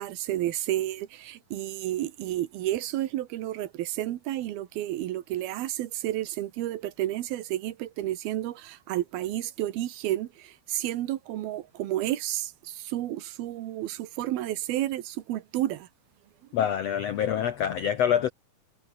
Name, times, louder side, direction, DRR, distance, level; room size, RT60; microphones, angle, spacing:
voice 1, 0.0-15.9, right 14 dB, 80° right, 3.1 m, -31 dB
voice 2, 16.5-18.3, left 9 dB, 75° left, 1.5 m, -26 dB
omnidirectional pair, 4.4 m